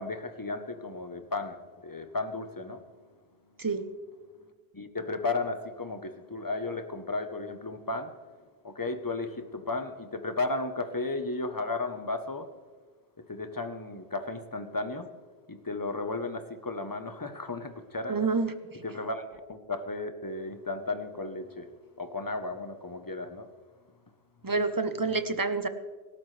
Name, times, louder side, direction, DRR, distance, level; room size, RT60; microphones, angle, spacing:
voice 1, 0.0-1.6 1.8-3.1 4.7-8.1 8.6-12.5 13.3-15.1 15.5-18.3 18.8-21.7 22.0-23.5, left 3 dB, 20° left, 8 dB, 0.9 m, -34 dB
voice 2, 18.1-18.5 24.4-25.7, right 4 dB, 20° right, 10 dB, 0.7 m, -28 dB
25.5 x 13.0 x 3.3 m, 1.4 s
omnidirectional pair, 1.1 m